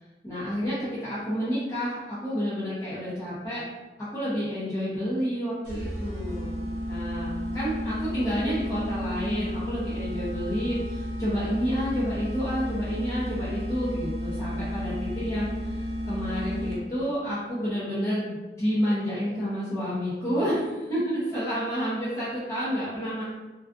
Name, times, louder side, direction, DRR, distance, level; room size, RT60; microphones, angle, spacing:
voice 1, 0.2-3.6 4.1-6.5 6.9-23.2, equal, 20° left, -13 dB, 0.6 m, -30 dB
sound 1, 5.6-17.1, equal, 60° right, 0.7 m, -32 dB
2.4 x 2.3 x 2.4 m, 1.1 s
head